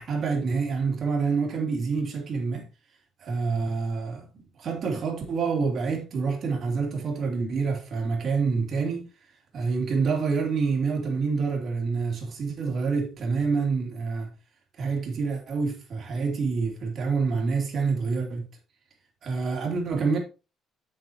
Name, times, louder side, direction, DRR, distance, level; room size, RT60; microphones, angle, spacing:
voice 1, 0.0-2.7 3.2-4.3 4.6-9.1 9.5-14.3 14.8-18.5 19.2-20.2, right 4 dB, 45° right, 2.8 m, -27 dB
8.4 x 7.8 x 3.0 m
cardioid pair, 150°, 0 cm